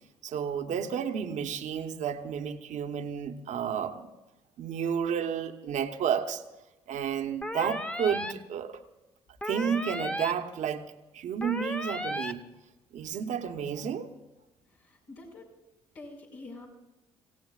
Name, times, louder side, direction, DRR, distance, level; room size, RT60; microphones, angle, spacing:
voice 1, 0.2-4.1 4.6-6.4 6.9-8.8 9.4-10.8 11.1-12.4 12.9-14.1, right 8 dB, 60° right, 6 dB, 1.1 m, -31 dB
sound 1, 7.4-8.3 9.4-10.3 11.4-12.3, equal, 10° left, 0.9 m, -34 dB
voice 2, 14.7-15.5 15.9-16.7, left 2 dB, 80° left, -5 dB, 5.4 m, -46 dB
25.5 x 16.5 x 2.4 m, 1.0 s
hypercardioid pair, 45°, 14 cm